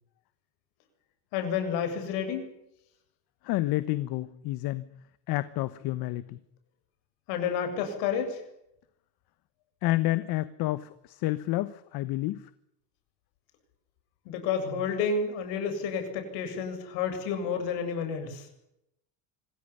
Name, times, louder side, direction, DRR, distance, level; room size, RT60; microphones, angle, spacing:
voice 1, 1.3-2.5 7.3-8.4 14.3-18.5, left 6 dB, 80° left, 7 dB, 7.6 m, -30 dB
voice 2, 3.4-4.9 5.3-6.4 9.8-12.5, left 17 dB, 55° left, 14 dB, 1.3 m, -29 dB
26.0 x 16.5 x 10.0 m, 0.81 s
cardioid pair, 165°, 43 cm